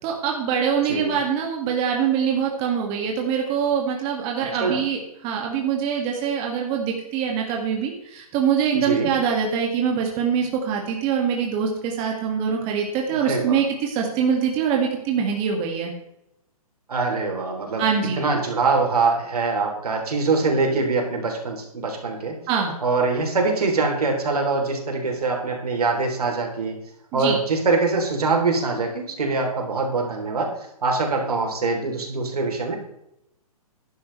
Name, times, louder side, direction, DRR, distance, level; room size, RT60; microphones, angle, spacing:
voice 1, 0.0-15.9 17.8-18.2 22.5-22.7 27.1-27.4, right 7 dB, 30° right, 1 dB, 2.1 m, -24 dB
voice 2, 0.8-1.2 4.5-4.8 8.8-9.1 13.2-13.6 16.9-17.8 18.2-22.4 22.8-26.8 27.1-30.5 30.8-32.8, right 3 dB, 80° right, 2 dB, 3.5 m, -23 dB
12.5 x 11.0 x 3.3 m, 0.82 s
hypercardioid pair, 140°, 19 cm